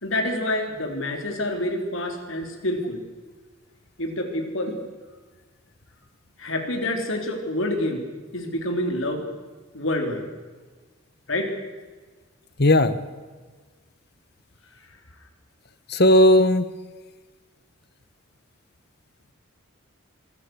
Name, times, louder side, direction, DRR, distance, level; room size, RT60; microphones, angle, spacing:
voice 1, 0.0-3.0 4.0-4.8 6.4-8.0 8.3-9.2 9.7-10.2 11.3-11.5, left 1 dB, 75° left, 4 dB, 4.4 m, -27 dB
voice 2, 12.6-13.0 15.9-16.7, left 1 dB, 50° left, 13 dB, 1.4 m, -16 dB
27.0 x 23.5 x 6.6 m, 1.4 s
head